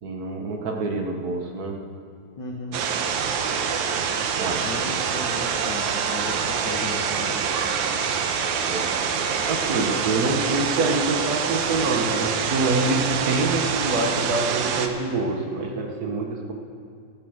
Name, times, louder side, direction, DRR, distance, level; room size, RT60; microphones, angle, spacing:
voice 1, 0.0-1.8 4.4-4.6 8.7-8.9 9.4-16.5, right 2 dB, 60° right, 2 dB, 1.0 m, -26 dB
voice 2, 2.4-2.8 4.6-7.4, left 3 dB, 55° left, 0 dB, 1.2 m, -35 dB
sound 1, 2.7-14.9, right 6 dB, 75° right, 2.3 m, -25 dB
14.5 x 12.5 x 6.6 m, 2.4 s
omnidirectional pair, 3.5 m